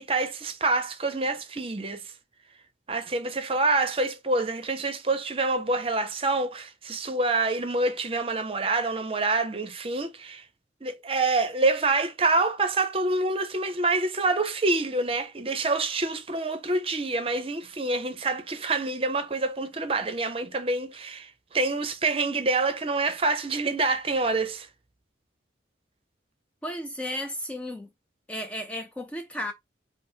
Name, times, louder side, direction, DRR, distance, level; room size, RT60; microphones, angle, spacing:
voice 1, 0.0-2.1 2.9-10.4 10.8-24.7, right 3 dB, 30° right, 0.6 m, -26 dB
voice 2, 26.6-27.9 28.3-29.5, left 1 dB, 5° left, 0.4 m, -34 dB
5.3 x 2.0 x 4.4 m
head